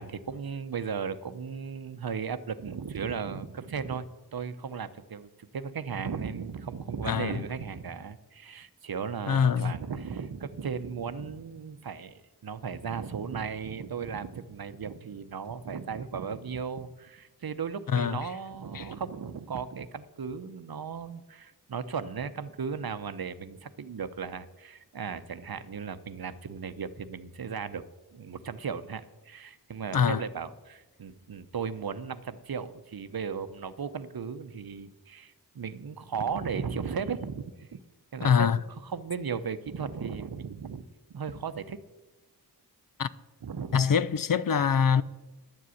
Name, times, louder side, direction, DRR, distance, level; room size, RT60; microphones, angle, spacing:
voice 1, 0.0-4.1 4.3-27.8 28.1-37.8 38.1-38.5 38.8-40.8 41.1-41.8 43.4-43.8, right 6 dB, 65° right, 0.8 m, -36 dB
voice 2, 7.1-7.4 9.3-9.7 17.9-18.2 18.7-18.9 29.9-30.2 38.2-38.6 43.0-43.1 43.7-45.0, left 7 dB, 60° left, 0.5 m, -24 dB
10.5 x 7.7 x 8.2 m
wide cardioid pair, 85°, 39 cm